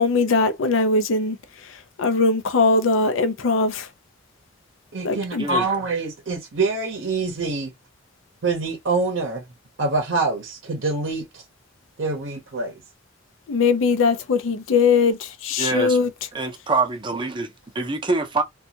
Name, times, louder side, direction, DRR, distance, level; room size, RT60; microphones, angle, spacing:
voice 1, 0.0-1.4 2.0-3.9 5.0-5.5 13.5-16.1, left 4 dB, 75° left, 0.5 m, -20 dB
voice 2, 4.9-7.7 8.4-9.4 9.8-11.4 12.0-12.8, right 3 dB, 65° right, 0.7 m, -25 dB
voice 3, 15.6-16.0 16.3-18.4, right 3 dB, 25° right, 0.5 m, -25 dB
2.6 x 2.3 x 2.7 m
head